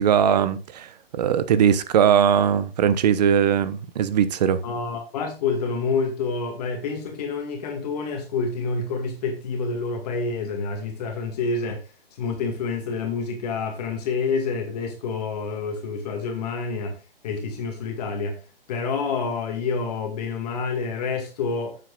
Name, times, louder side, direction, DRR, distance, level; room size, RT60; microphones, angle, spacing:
voice 1, 0.0-4.6, right 8 dB, 45° right, 0.9 m, -20 dB
voice 2, 4.6-17.0 17.2-18.4 18.7-21.8, left 4 dB, 40° left, 1.9 m, -28 dB
11.0 x 7.7 x 2.4 m
hypercardioid pair, 145°, 30 cm